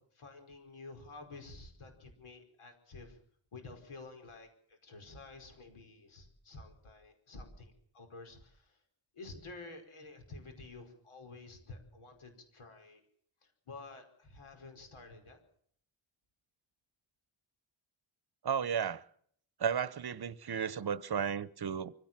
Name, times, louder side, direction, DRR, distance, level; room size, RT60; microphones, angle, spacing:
voice 1, 0.0-3.2 3.5-8.8 9.1-13.0 13.7-15.4, left 3 dB, 80° left, 5.1 m, -51 dB
voice 2, 18.4-19.0 19.6-21.9, right 7 dB, 50° right, 0.9 m, -34 dB
24.5 x 16.5 x 7.5 m
wide cardioid pair, 170°, 49 cm